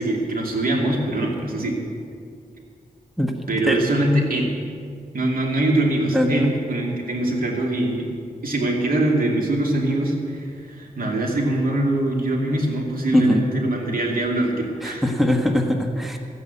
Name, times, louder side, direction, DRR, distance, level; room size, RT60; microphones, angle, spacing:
voice 1, 0.0-1.8 3.5-4.5 5.1-8.1 8.4-15.0, right 1 dB, 75° right, -1 dB, 2.6 m, -23 dB
voice 2, 6.1-6.5 13.1-13.4 14.8-16.2, left 1 dB, ahead, 3 dB, 1.2 m, -21 dB
14.0 x 9.7 x 8.3 m, 2.3 s
wide cardioid pair, 105°, 15 cm